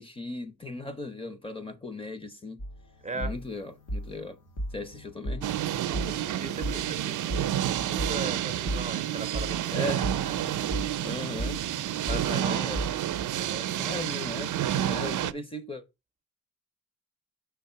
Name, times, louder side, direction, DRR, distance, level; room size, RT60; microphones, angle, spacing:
voice 1, 0.0-2.6 3.1-4.4 4.7-5.5 9.7-10.0 11.0-11.6 12.1-12.8 13.7-15.8, left 2 dB, 20° left, 0.7 m, -37 dB
sound 1, 2.6-13.2, equal, 85° left, 1.9 m, -37 dB
sound 2, 5.4-15.3, right 12 dB, 80° right, 0.5 m, -30 dB
voice 2, 5.8-7.1 7.4-10.4 12.0-12.8 13.4-14.0, right 3 dB, 25° right, 0.5 m, -39 dB
6.3 x 3.4 x 5.6 m
wide cardioid pair, 180°, 30 cm